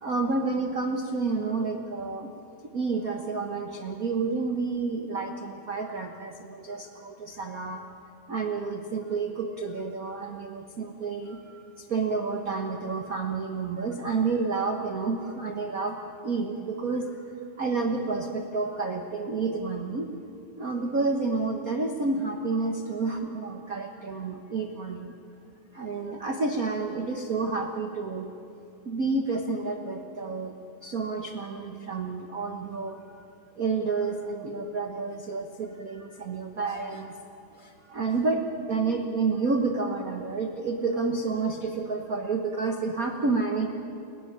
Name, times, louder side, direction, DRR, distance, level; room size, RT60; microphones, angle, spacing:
voice 1, 0.0-2.3 2.7-7.8 8.3-17.1 17.6-20.1 20.6-25.1 25.7-28.3 28.8-30.6 30.8-33.2 33.6-37.2 37.5-43.7, right 4 dB, 75° right, 4 dB, 0.8 m, -30 dB
29.0 x 15.0 x 9.8 m, 2.7 s
omnidirectional pair, 3.6 m